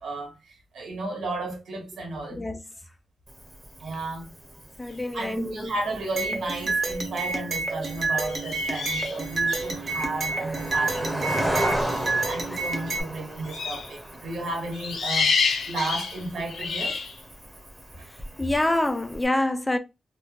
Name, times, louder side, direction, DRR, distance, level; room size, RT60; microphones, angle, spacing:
voice 1, 0.0-2.5 3.8-4.3 5.1-11.8 12.3-17.0, right 2 dB, 80° right, 1.0 m, -33 dB
voice 2, 2.3-2.6 4.8-5.7 6.3-6.4 18.1-19.8, left 1 dB, 10° left, 0.3 m, -27 dB
Cricket, 3.3-19.3, right 1 dB, 10° right, 0.9 m, -36 dB
sound 1, 6.2-13.0, right 3 dB, 35° right, 0.7 m, -29 dB
sound 2, 6.8-7.1 8.2-9.7 13.4-13.9 14.7-17.2, left 5 dB, 85° left, 0.5 m, -28 dB
2.5 x 2.2 x 3.6 m
wide cardioid pair, 170°, 0 cm